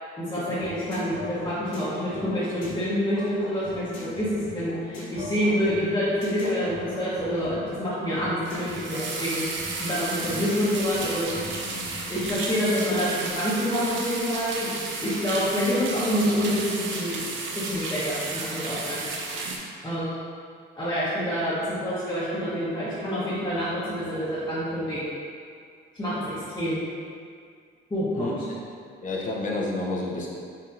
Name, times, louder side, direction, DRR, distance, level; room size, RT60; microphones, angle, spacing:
voice 1, 0.2-11.4 12.1-14.7 15.0-17.3 17.5-19.0 19.8-20.2 20.8-25.1 26.0-26.8 27.9-28.3, equal, 20° left, -12 dB, 1.1 m, -27 dB
sound 1, 0.6-12.4, left 2 dB, 90° left, 1.2 m, -39 dB
sound 2, 8.4-19.6, right 3 dB, 70° right, 0.6 m, -33 dB
voice 2, 28.1-28.6 29.0-30.3, left 2 dB, 40° left, -3 dB, 0.8 m, -29 dB
4.2 x 3.4 x 2.6 m, 2.2 s
cardioid pair, 90°, 20 cm